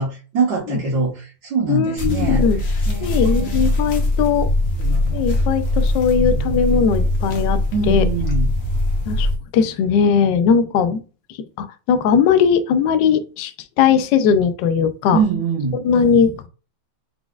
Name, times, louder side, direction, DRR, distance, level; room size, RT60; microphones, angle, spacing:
voice 1, 0.0-2.4 2.9-3.7 7.7-8.5 15.1-15.8, right 5 dB, 65° right, 1.9 m, -23 dB
voice 2, 1.7-2.6 3.0-4.5 5.1-7.6 7.9-8.0 9.1-9.3 9.5-11.0 11.6-13.5 13.8-15.2 15.8-16.5, left 6 dB, 75° left, 1.2 m, -18 dB
sound 1, 2.0-9.4, left 1 dB, 40° left, 1.0 m, -21 dB
4.7 x 4.1 x 2.4 m
omnidirectional pair, 2.1 m